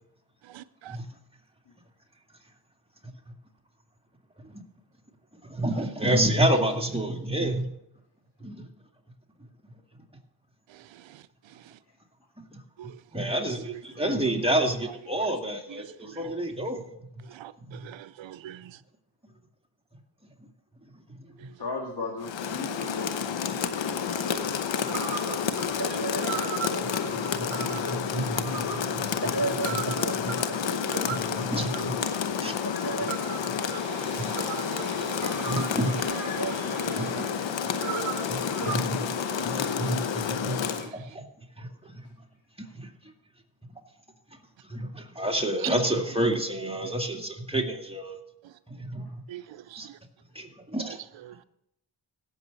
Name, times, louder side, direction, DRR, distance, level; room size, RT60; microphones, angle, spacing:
voice 1, 0.5-1.0 12.8-12.9 13.7-13.8 15.7-15.8 17.3-17.5 17.8-18.7 24.1-24.2 24.9-25.4 32.0-32.1 33.7-35.8 36.3-37.3 49.3-49.4 49.7-49.8, right 13 dB, 90° right, 0.6 m, -43 dB
voice 2, 5.5-7.7 8.4-8.6 12.5-12.6 13.1-16.8 17.7-17.8 27.6-28.8 29.7-30.0 30.2-30.3 31.0-31.9 32.4-32.6 33.5-34.5 35.4-35.9 37.0-37.2 38.3-39.1 39.4-40.6 40.9-41.2 41.6-41.7 42.8-42.9 44.7-48.2 48.7-49.0 49.8-49.9 50.4-51.0, right 1 dB, 15° right, 2.2 m, -29 dB
voice 3, 21.6-23.4 49.0-49.1, left 3 dB, 60° left, 1.9 m, -36 dB
Rain, 22.2-40.9, left 7 dB, 85° left, 0.9 m, -30 dB
sound 1, 24.5-24.6 24.9-38.8, right 5 dB, 40° right, 1.9 m, -35 dB
17.0 x 7.2 x 4.0 m
cardioid pair, 45°, 44 cm